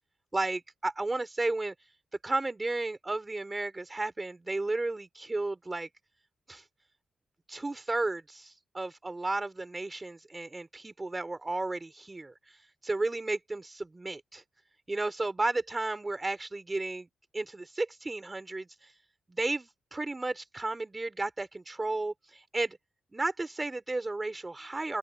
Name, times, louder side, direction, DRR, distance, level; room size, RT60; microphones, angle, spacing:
voice 1, 0.3-1.7 2.2-5.9 6.5-6.6 7.5-12.3 12.8-14.4 14.9-18.9 19.3-22.8 23.1-25.0, right 2 dB, 20° right, 3.7 m, -33 dB
open air
cardioid pair, 105°, 0 cm